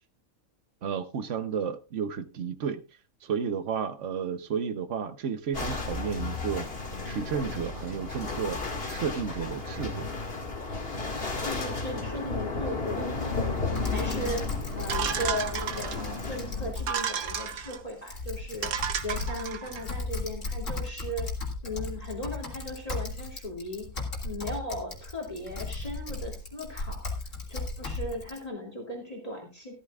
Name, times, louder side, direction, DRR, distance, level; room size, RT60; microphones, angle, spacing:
voice 1, 0.8-2.8 3.2-6.7 7.1-8.6 8.9-10.1, right 7 dB, 60° right, 1.2 m, -32 dB
sound 1, 5.5-16.7, left 3 dB, 45° left, 2.3 m, -33 dB
voice 2, 11.4-14.5 14.7-21.3 21.6-23.9 24.2-27.1 27.5-29.7, left 1 dB, 25° left, 2.9 m, -37 dB
Typing, 13.8-28.4, left 3 dB, 60° left, 3.0 m, -36 dB
sound 2, 14.9-16.2 16.8-17.8 18.3-18.4 18.6-19.8, right 8 dB, 85° right, 1.5 m, -32 dB
14.0 x 13.0 x 2.4 m
omnidirectional pair, 1.5 m